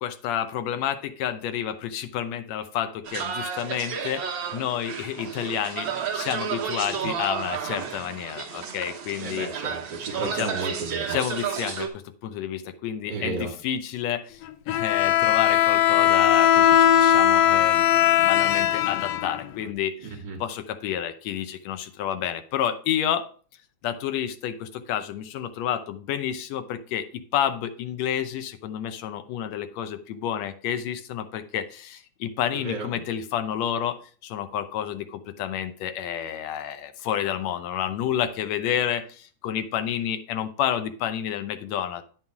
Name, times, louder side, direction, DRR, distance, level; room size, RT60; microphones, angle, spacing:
voice 1, 0.0-4.2 4.5-5.9 6.1-9.5 10.2-10.5 11.1-14.4 14.7-17.9 18.2-23.3 23.8-34.0 34.2-42.0, left 10 dB, 70° left, 9 dB, 1.9 m, -30 dB
sound 1, 3.0-11.9, right 7 dB, 55° right, 1.5 m, -32 dB
voice 2, 9.2-11.2 13.1-13.5 20.0-20.4 32.5-33.0, right 3 dB, 40° right, -2 dB, 2.6 m, -33 dB
Bowed string instrument, 14.7-19.7, left 11 dB, 90° left, 1.3 m, -19 dB
9.4 x 5.6 x 4.6 m, 0.40 s
omnidirectional pair, 3.4 m